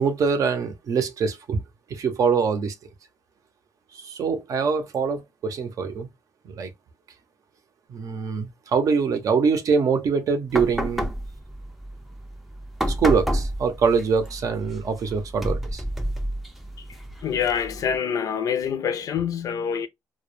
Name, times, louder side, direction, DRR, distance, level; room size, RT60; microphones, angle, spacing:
voice 1, 0.0-1.6 1.9-2.7 3.9-6.1 6.4-6.7 7.9-11.1 13.0-15.8, right 5 dB, 50° right, 0.6 m, -24 dB
sound 1, 10.5-18.0, equal, ahead, 0.4 m, -30 dB
voice 2, 17.2-19.9, left 7 dB, 55° left, 0.4 m, -26 dB
2.2 x 2.0 x 3.1 m
cardioid pair, 120°, 7 cm